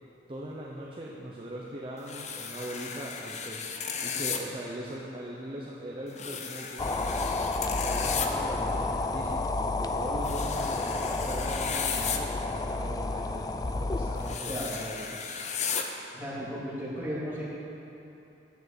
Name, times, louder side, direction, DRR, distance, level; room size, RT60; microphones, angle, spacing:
voice 1, 0.3-3.7 4.0-7.2 7.8-15.2, right 1 dB, 30° right, -4 dB, 0.9 m, -40 dB
sound 1, 2.1-4.4 6.1-8.3 10.2-12.2 14.2-15.8, left 6 dB, 40° left, 0.7 m, -35 dB
sound 2, 6.8-14.4, left 2 dB, 20° left, 0.3 m, -31 dB
voice 2, 16.1-17.4, equal, 10° right, -9 dB, 2.8 m, -35 dB
9.4 x 7.3 x 8.1 m, 2.9 s
head